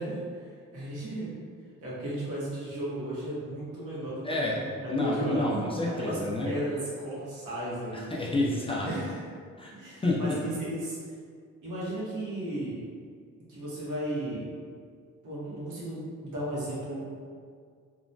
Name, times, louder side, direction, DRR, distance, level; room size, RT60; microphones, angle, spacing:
voice 1, 0.0-1.4 1.8-5.6 5.9-6.2 6.4-8.0 8.8-9.2 9.7-11.0 11.6-12.8 13.5-14.5 15.2-17.1, right 1 dB, 80° right, -8 dB, 1.1 m, -34 dB
voice 2, 4.2-4.6 4.9-6.5 7.9-8.9 9.6-9.8 10.0-10.3, left 2 dB, 20° left, -4 dB, 0.4 m, -29 dB
3.0 x 2.1 x 2.6 m, 2.1 s
cardioid pair, 90°, 30 cm